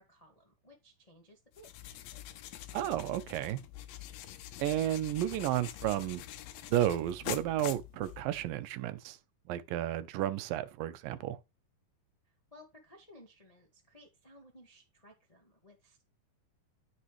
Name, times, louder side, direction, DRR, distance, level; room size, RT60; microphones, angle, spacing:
voice 1, 0.0-2.0 12.5-16.0, left 1 dB, 20° left, 0.9 m, -58 dB
sound 1, 1.5-8.5, left 12 dB, 90° left, 2.6 m, -45 dB
voice 2, 2.7-3.6 4.6-6.2 6.7-9.2 9.5-11.4, right 13 dB, 85° right, 2.5 m, -32 dB
13.5 x 6.0 x 3.2 m
omnidirectional pair, 3.9 m